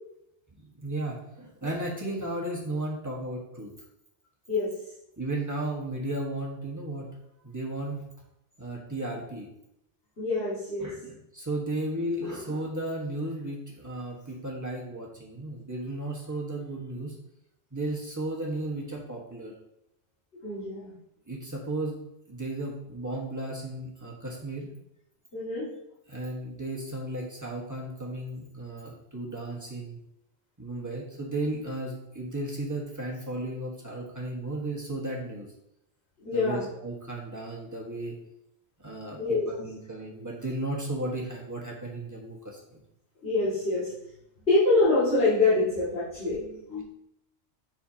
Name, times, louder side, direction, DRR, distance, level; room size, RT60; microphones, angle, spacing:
voice 1, 0.6-3.7 5.2-7.2 7.4-8.1 8.6-9.5 10.8-17.1 17.7-19.5 21.3-21.9 22.3-24.7 26.1-30.0 30.6-35.5 36.3-38.2 38.8-42.8, right 1 dB, 15° right, -3 dB, 1.4 m, -34 dB
voice 2, 10.2-10.9 20.4-20.9 25.3-25.7 36.2-36.6 39.2-39.5 43.2-43.9 44.5-46.8, left 2 dB, 60° left, -12 dB, 2.6 m, -25 dB
7.7 x 5.9 x 2.9 m, 0.80 s
omnidirectional pair, 1.2 m